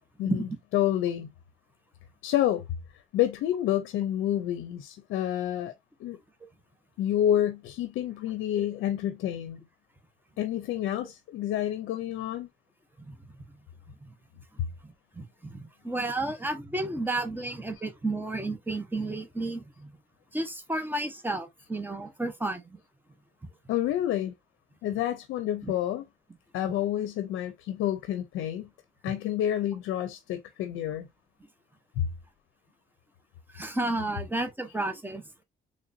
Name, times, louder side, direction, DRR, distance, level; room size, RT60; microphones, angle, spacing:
voice 1, 0.7-1.3 2.2-2.6 3.1-5.7 6.0-6.2 7.0-9.6 10.4-12.5 14.6-14.7 23.7-24.3 24.8-26.0 26.5-28.7 29.0-31.1 32.0-32.1, left 11 dB, 85° left, 0.5 m, -28 dB
voice 2, 14.8-19.9 20.3-22.8 25.6-25.7 26.6-26.7 33.5-35.2, right 2 dB, 10° right, 0.9 m, -32 dB
3.8 x 3.2 x 2.5 m
cardioid pair, 90°, 20 cm